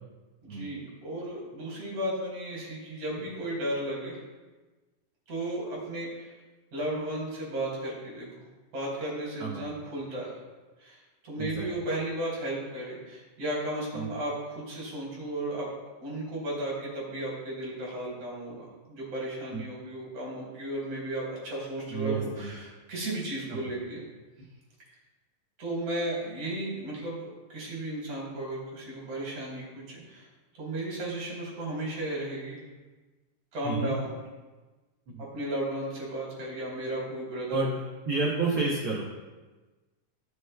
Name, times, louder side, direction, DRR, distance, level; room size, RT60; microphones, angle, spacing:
voice 1, 0.4-4.2 5.3-6.3 6.7-8.3 8.7-10.4 10.8-11.0 11.2-15.7 16.0-24.1 25.6-30.3 30.5-32.7 33.5-34.1 35.3-37.7, right 1 dB, 60° right, -5 dB, 3.8 m, -34 dB
voice 2, 21.9-22.5 33.6-34.0 35.1-35.2 37.5-37.8 38.1-39.0, right 3 dB, 75° right, -4 dB, 1.1 m, -30 dB
14.5 x 6.4 x 2.3 m, 1.2 s
omnidirectional pair, 4.0 m